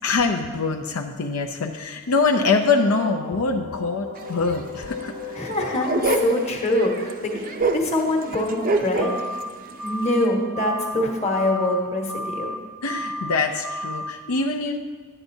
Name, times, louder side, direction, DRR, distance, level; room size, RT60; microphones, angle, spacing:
voice 1, 0.0-5.4 5.6-5.7 12.8-14.8, left 4 dB, 75° left, 2 dB, 0.5 m, -24 dB
sound 1, 2.7-8.4, left 4 dB, 55° left, 1.1 m, -39 dB
sound 2, 4.2-4.3 4.6-4.7 4.9-5.0 5.3-9.4 9.7-10.2, right 2 dB, 40° right, 0.4 m, -26 dB
voice 2, 5.3-9.2 9.8-12.5, left 1 dB, 30° left, 0 dB, 1.1 m, -24 dB
sound 3, 9.0-9.5 9.8-10.3 10.5-11.0 11.3-11.8 12.1-12.6 12.9-13.3 13.6-14.1, equal, 15° left, 0.8 m, -32 dB
11.0 x 8.9 x 2.7 m, 1.5 s
head